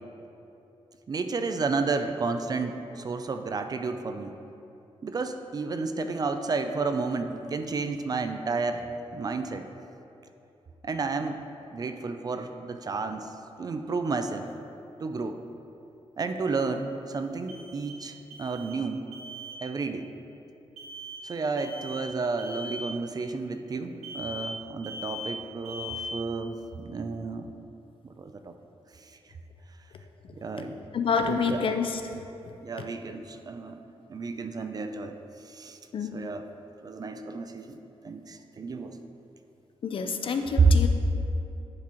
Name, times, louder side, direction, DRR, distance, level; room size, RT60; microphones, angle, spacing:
voice 1, 1.1-4.3 5.0-8.8 9.1-9.6 10.8-11.4 11.7-13.3 13.6-14.5 15.0-15.4 16.2-19.0 19.6-20.1 21.2-27.4 28.2-28.5 30.3-30.8 31.3-31.6 32.6-33.8 34.1-35.2 35.5-35.8 36.1-36.4 36.8-37.8 38.0-39.0 40.6-40.7, right 4 dB, 35° right, 7 dB, 0.4 m, -31 dB
sound 1, 17.5-18.1 18.3-18.9 19.1-19.6 20.8-21.3 21.6-22.1 22.4-22.9 24.0-24.6 24.8-25.4 25.6-26.2, left 1 dB, 80° right, 1.4 m, -39 dB
voice 2, 30.9-32.0 32.8-32.9 35.9-36.2 39.8-40.9, left 5 dB, 55° left, 6 dB, 0.5 m, -27 dB
10.5 x 4.8 x 2.9 m, 2.9 s
wide cardioid pair, 130°, 11 cm